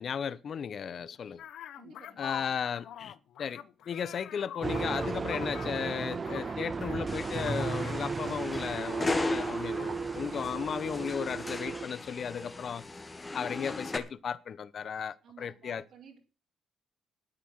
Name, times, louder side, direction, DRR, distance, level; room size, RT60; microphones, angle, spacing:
voice 1, 0.0-1.4 2.2-3.6 3.9-12.8 13.3-15.8, left 7 dB, 55° left, 0.8 m, -35 dB
sound 1, 1.4-7.0 7.2-7.9, left 10 dB, 80° left, 1.0 m, -45 dB
voice 2, 1.7-2.5 15.2-16.2, right 6 dB, 75° right, 4.3 m, -54 dB
sound 2, 4.6-11.9, right 4 dB, 35° right, 0.7 m, -35 dB
sound 3, 7.1-14.0, left 2 dB, 25° left, 2.3 m, -37 dB
13.0 x 9.4 x 6.5 m
cardioid pair, 90°, 0 cm